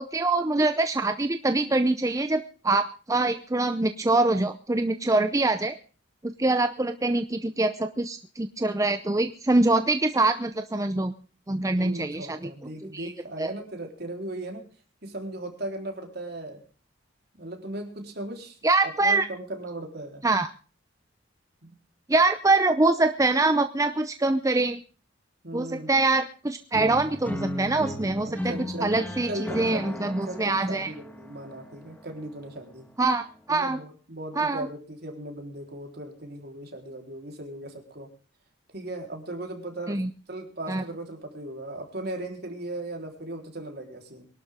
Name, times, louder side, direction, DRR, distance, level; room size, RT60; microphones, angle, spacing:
voice 1, 0.0-5.8 6.2-11.1 11.5-12.5 12.8-13.1 13.4-13.5 18.6-19.3 20.2-20.5 22.1-24.8 25.5-28.5 28.8-30.9 33.0-33.8 34.4-34.7 39.9-40.1 40.7-40.8, right 2 dB, 15° right, 9 dB, 0.6 m, -24 dB
voice 2, 11.8-14.6 15.0-16.6 17.3-18.6 18.8-20.2 21.6-21.7 25.4-25.9 28.3-29.0 29.3-32.9 33.5-38.1 38.7-40.0 40.3-44.3, right 1 dB, 55° right, 3 dB, 3.9 m, -37 dB
sound 1, 26.7-32.7, equal, 10° left, 1.6 m, -36 dB
23.0 x 12.0 x 3.7 m, 0.38 s
head